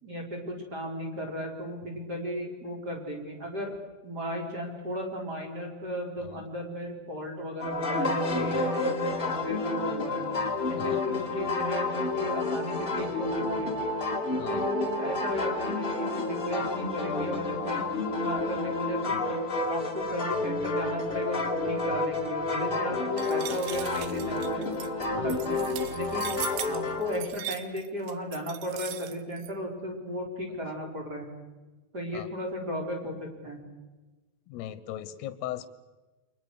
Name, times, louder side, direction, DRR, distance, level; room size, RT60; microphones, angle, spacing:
voice 1, 0.0-3.8 4.0-10.2 10.7-13.8 14.5-17.8 18.1-19.4 19.7-24.7 25.1-26.4 26.7-31.3 31.9-33.6, equal, 25° right, 1 dB, 3.8 m, -35 dB
sound 1, 7.6-27.2, left 3 dB, 30° left, 1.0 m, -30 dB
sound 2, 23.2-29.5, right 13 dB, 75° right, 3.0 m, -39 dB
voice 2, 34.5-35.7, left 12 dB, 70° left, 13 dB, 2.8 m, -39 dB
29.5 x 24.5 x 6.5 m, 1.2 s
omnidirectional pair, 5.4 m